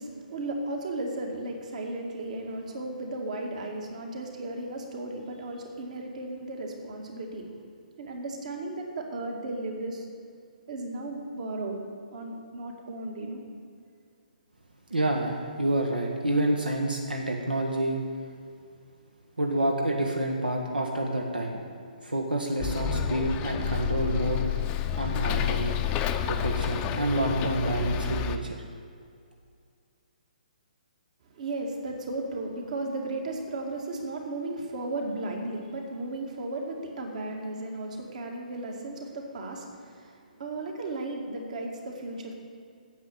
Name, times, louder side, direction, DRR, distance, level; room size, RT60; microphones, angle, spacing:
voice 1, 0.0-7.5 8.0-10.1 10.7-11.8 12.1-13.4 31.3-42.3, right 2 dB, 55° right, 2 dB, 2.0 m, -35 dB
voice 2, 14.9-18.0 19.4-21.7 22.0-24.4 25.0-25.8 26.3-28.6, right 1 dB, 85° right, 2 dB, 1.3 m, -28 dB
Bus, 22.6-28.4, left 8 dB, 20° left, 0.6 m, -29 dB
9.4 x 7.6 x 7.8 m, 2.3 s
figure-of-eight pair, 135°, 5 cm